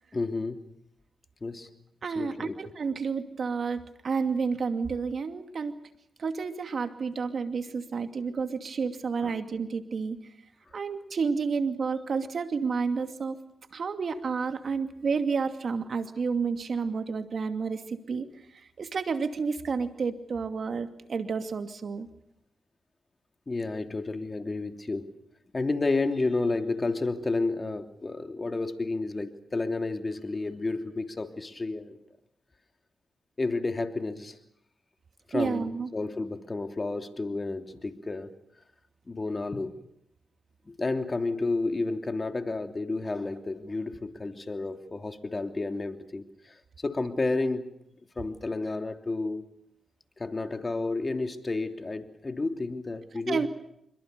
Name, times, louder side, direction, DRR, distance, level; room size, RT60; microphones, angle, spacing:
voice 1, 0.1-0.6 1.4-1.7 2.1-2.5 9.2-9.3 23.5-25.1 25.5-32.0 33.4-34.4 35.3-38.3 39.1-39.8 40.7-46.5 46.8-47.7 48.2-49.5 50.2-53.5, left 3 dB, 35° left, 3.1 m, -31 dB
voice 2, 2.0-5.7 6.2-10.2 10.7-13.4 13.7-22.1 35.3-35.9 53.3-53.5, right 5 dB, 65° right, 2.5 m, -30 dB
27.5 x 23.5 x 6.9 m
supercardioid pair, 45°, 0 cm